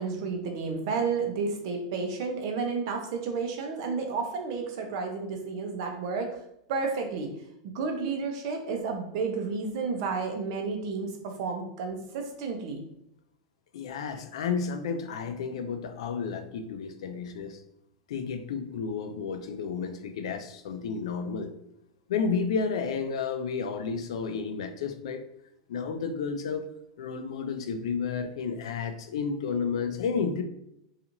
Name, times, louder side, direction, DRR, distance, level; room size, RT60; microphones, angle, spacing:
voice 1, 0.0-6.4 6.7-7.3 7.7-12.8, right 4 dB, 60° right, 3 dB, 0.6 m, -31 dB
voice 2, 13.7-17.6 18.1-21.5 22.1-25.2 25.7-26.7 27.0-30.4, left 5 dB, 85° left, 8 dB, 0.4 m, -31 dB
2.9 x 2.4 x 2.5 m, 0.77 s
supercardioid pair, 150°, 3 cm